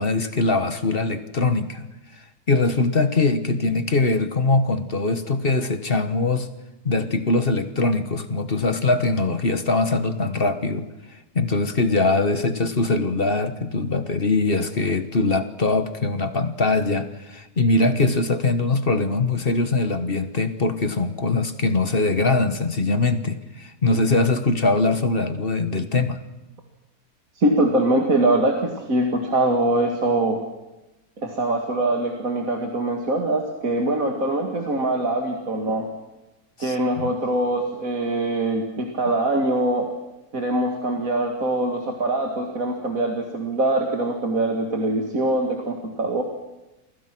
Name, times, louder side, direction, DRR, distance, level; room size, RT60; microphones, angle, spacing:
voice 1, 0.0-1.9 2.5-6.5 6.8-10.8 11.3-26.2 36.6-37.1, left 3 dB, 35° left, 10 dB, 1.6 m, -22 dB
voice 2, 27.4-30.4 31.2-35.9 36.6-39.9 40.3-46.2, right 2 dB, 60° right, 2 dB, 2.7 m, -23 dB
29.0 x 24.5 x 6.2 m, 1.0 s
omnidirectional pair, 1.7 m